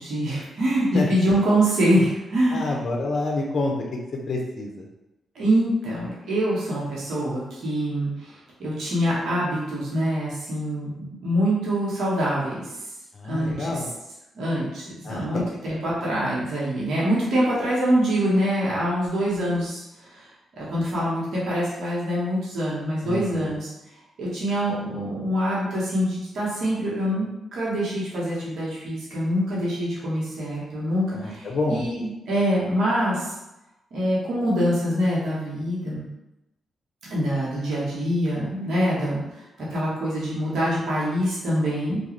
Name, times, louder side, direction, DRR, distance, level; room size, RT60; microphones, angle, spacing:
voice 1, 0.0-2.8 5.3-8.3 8.6-12.7 13.2-13.8 14.3-19.8 20.1-20.3 20.6-23.7 24.2-33.2 33.9-36.0 37.1-39.4 39.7-42.0, equal, 70° right, -7 dB, 1.0 m, -25 dB
voice 2, 2.5-3.7 4.3-4.8 13.2-13.9 15.0-15.4 23.0-23.5 31.2-31.8, left 2 dB, 60° left, 0 dB, 0.5 m, -28 dB
2.4 x 2.3 x 3.0 m, 0.95 s
supercardioid pair, 50°, 0 cm